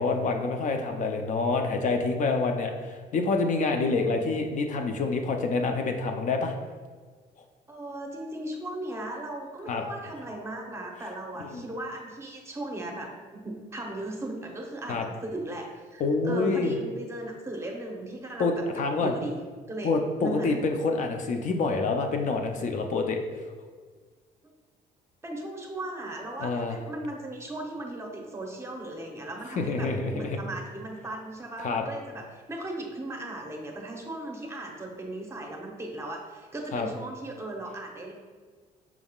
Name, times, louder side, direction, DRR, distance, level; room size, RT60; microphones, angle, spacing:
voice 1, 0.0-6.5 9.7-9.8 11.4-11.6 14.9-15.1 16.0-16.8 18.4-19.1 19.8-23.2 26.4-26.8 29.6-30.4 31.6-31.8 36.7-36.9, left 3 dB, 50° left, 4 dB, 0.5 m, -27 dB
voice 2, 3.8-4.3 7.7-18.5 19.0-19.3 19.7-20.5 25.2-38.1, right 1 dB, 15° right, 1 dB, 0.8 m, -37 dB
5.9 x 3.5 x 2.3 m, 1.5 s
cardioid pair, 100°, 16 cm